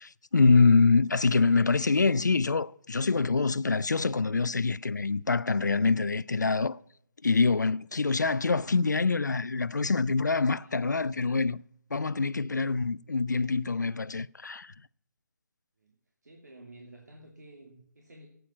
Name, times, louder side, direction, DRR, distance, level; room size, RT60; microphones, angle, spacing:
voice 1, 0.0-6.8 7.2-11.6 11.9-14.7, left 4 dB, 80° left, 0.4 m, -25 dB
voice 2, 10.5-10.8 15.8-15.9 16.2-18.3, right 1 dB, 70° right, 2.6 m, -52 dB
12.5 x 9.1 x 7.3 m
figure-of-eight pair, 145°, 10 cm